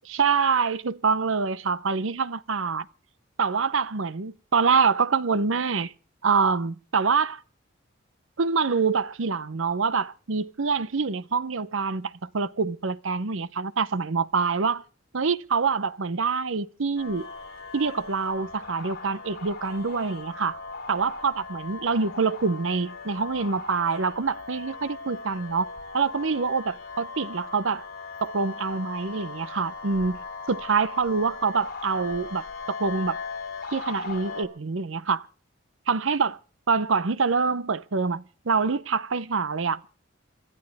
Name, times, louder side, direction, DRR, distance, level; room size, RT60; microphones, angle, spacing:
voice 1, 0.1-2.9 3.4-5.9 6.2-7.4 8.4-14.8 15.1-17.3 17.7-20.6 20.9-25.7 25.9-27.8 28.2-30.2 30.5-33.2 33.7-35.3 35.9-36.4 36.7-39.9, right 5 dB, 75° right, 0.8 m, -25 dB
sound 1, 17.0-34.4, left 4 dB, 50° left, 3.6 m, -39 dB
27.0 x 13.0 x 3.5 m
head